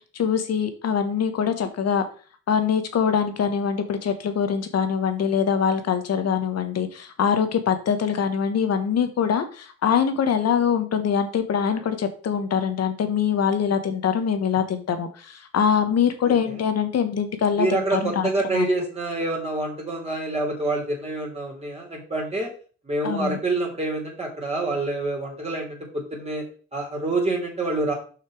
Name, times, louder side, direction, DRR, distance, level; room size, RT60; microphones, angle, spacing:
voice 1, 0.1-2.0 2.5-18.7 23.0-23.4, left 7 dB, 55° left, 9 dB, 1.3 m, -23 dB
voice 2, 16.2-16.6 17.6-22.5 22.8-26.4 26.7-27.9, right 2 dB, 20° right, -2 dB, 2.9 m, -27 dB
5.9 x 5.7 x 4.9 m, 0.40 s
cardioid pair, 90°, 30 cm